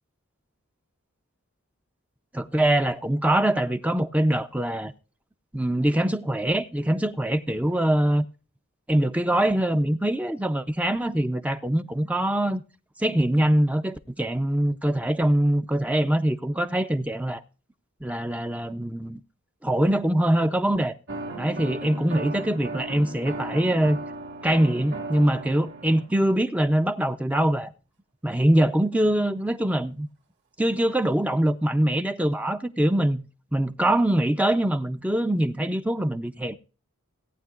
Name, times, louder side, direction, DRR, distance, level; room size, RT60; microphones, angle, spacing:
voice 1, 2.3-4.9 5.5-8.3 8.9-12.6 13.0-17.4 18.0-19.2 19.6-21.0 21.4-24.0 24.4-27.7 28.2-30.1 30.6-36.6, right 1 dB, 5° right, 0.5 m, -23 dB
sound 1, 21.1-26.1, right 2 dB, 55° right, 2.0 m, -36 dB
18.0 x 9.1 x 2.4 m
head